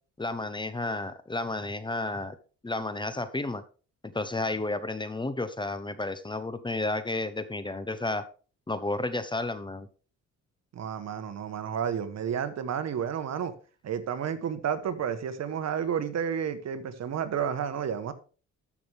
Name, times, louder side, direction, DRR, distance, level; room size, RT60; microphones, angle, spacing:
voice 1, 0.2-2.4 2.6-3.6 4.1-8.2 8.7-9.9, left 2 dB, 15° left, 0.9 m, -32 dB
voice 2, 10.7-13.5 13.8-18.1, right 8 dB, 60° right, 1.3 m, -31 dB
13.5 x 6.2 x 3.5 m
cardioid pair, 90°, 30 cm